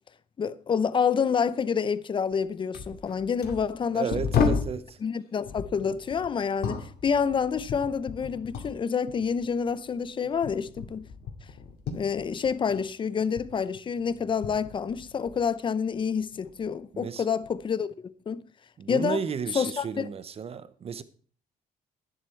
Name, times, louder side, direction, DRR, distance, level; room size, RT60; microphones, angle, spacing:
voice 1, 0.4-4.6 5.0-11.1 11.9-18.4 18.9-19.2 19.5-20.1, left 6 dB, 30° left, 0.6 m, -28 dB
sound 1, 2.3-2.4 2.7-4.8 5.4-8.8 9.1-12.9 13.2-15.5 15.9-16.7 17.4-17.6, left 5 dB, 75° left, 2.4 m, -34 dB
voice 2, 3.9-5.0 16.9-17.2 18.8-21.0, right 6 dB, 40° right, 0.9 m, -33 dB
11.0 x 10.5 x 4.5 m
cardioid pair, 135°, 16 cm